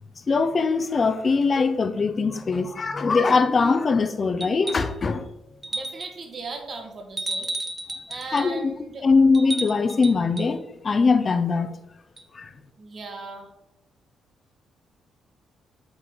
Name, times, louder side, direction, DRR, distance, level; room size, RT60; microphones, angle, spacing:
voice 1, 0.3-5.2 8.3-8.7 9.0-11.8 12.3-12.5, left 4 dB, 35° left, 0.7 m, -21 dB
sound 1, 4.4-5.0 5.6-6.2 7.2-8.6 9.3-10.5 12.2-12.3, right 2 dB, 25° right, 0.6 m, -33 dB
voice 2, 5.7-7.5 8.1-9.1 12.8-13.5, right 3 dB, 45° right, 1.6 m, -37 dB
7.8 x 4.2 x 3.9 m
cardioid pair, 90°, 0 cm